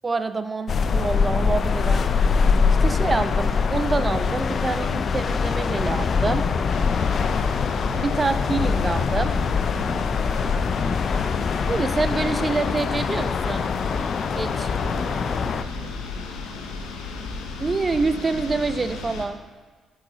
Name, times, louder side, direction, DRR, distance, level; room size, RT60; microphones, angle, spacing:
voice 1, 0.0-2.1 2.8-6.5 7.9-9.3 11.7-13.7 14.4-14.7 17.6-19.4, right 3 dB, 35° right, 11 dB, 0.5 m, -26 dB
sound 1, 0.7-15.6, left 5 dB, 50° left, 0.4 m, -23 dB
sound 2, 1.3-6.6, equal, 20° left, 2.0 m, -47 dB
sound 3, 6.7-19.3, left 4 dB, 80° left, 0.8 m, -34 dB
voice 2, 14.8-17.2, right 3 dB, 55° right, -1 dB, 1.7 m, -46 dB
9.5 x 4.8 x 3.9 m, 1.5 s
hypercardioid pair, 50°, 0 cm